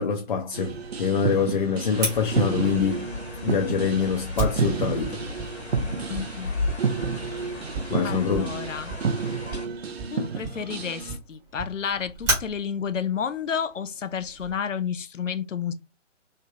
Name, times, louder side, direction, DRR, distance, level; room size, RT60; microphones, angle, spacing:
voice 1, 0.0-3.1 3.4-5.2 7.9-8.5, left 6 dB, 40° left, 0.7 m, -25 dB
sound 1, 0.5-11.2, right 5 dB, 55° right, 0.6 m, -31 dB
sound 2, 1.9-9.7, left 3 dB, 55° left, 1.7 m, -36 dB
Fire, 2.0-14.5, right 3 dB, 10° right, 0.9 m, -35 dB
voice 2, 6.1-6.7 8.0-9.0 10.1-15.7, left 7 dB, 75° left, 0.6 m, -31 dB
3.3 x 2.9 x 2.4 m
figure-of-eight pair, 140°, 37 cm